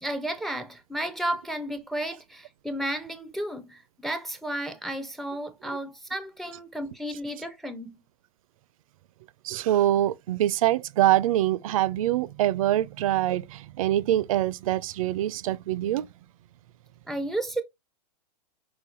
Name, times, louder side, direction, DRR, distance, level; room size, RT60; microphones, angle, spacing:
voice 1, 0.0-7.9 17.1-17.6, right 1 dB, ahead, 0.4 m, -33 dB
voice 2, 9.4-16.1, right 13 dB, 55° right, 0.5 m, -24 dB
5.8 x 2.3 x 3.9 m
hypercardioid pair, 150°, 21 cm